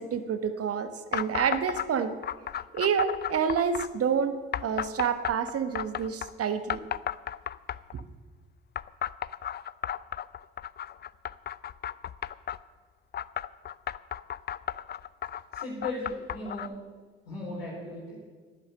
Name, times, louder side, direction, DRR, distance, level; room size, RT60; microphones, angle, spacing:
voice 1, 0.0-2.2 2.7-4.4 4.6-6.8, right 7 dB, 55° right, 10 dB, 1.2 m, -28 dB
sound 1, 1.1-1.9 2.2-3.9 4.5-6.3 6.7-8.0 8.8-12.6 13.1-16.7, left 10 dB, 35° left, 0.4 m, -34 dB
voice 2, 15.5-16.7 17.2-18.2, left 2 dB, 90° left, -5 dB, 4.4 m, -36 dB
14.0 x 10.5 x 6.7 m, 1.4 s
hypercardioid pair, 45°, 29 cm